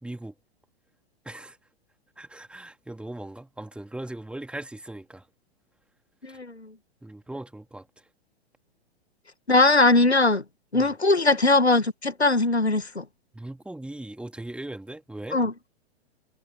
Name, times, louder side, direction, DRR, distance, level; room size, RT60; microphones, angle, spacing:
voice 1, 0.0-0.3 1.2-1.6 2.2-5.3 6.3-6.4 7.0-7.9 10.7-10.9 13.3-15.4, right 1 dB, 5° right, 2.9 m, -39 dB
voice 2, 6.2-6.7 9.5-10.4 10.7-13.0 15.3-15.5, left 2 dB, 90° left, 1.6 m, -20 dB
figure-of-eight pair, 105°, 31 cm